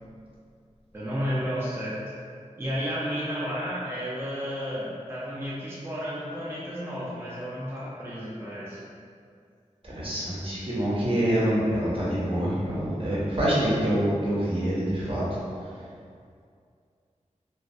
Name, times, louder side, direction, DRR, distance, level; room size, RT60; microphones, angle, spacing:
voice 1, 0.9-2.0 2.6-8.8, equal, 20° right, -8 dB, 0.4 m, -32 dB
voice 2, 9.8-15.2, right 1 dB, 45° right, -8 dB, 0.7 m, -26 dB
2.2 x 2.2 x 2.5 m, 2.3 s
wide cardioid pair, 75°, 13 cm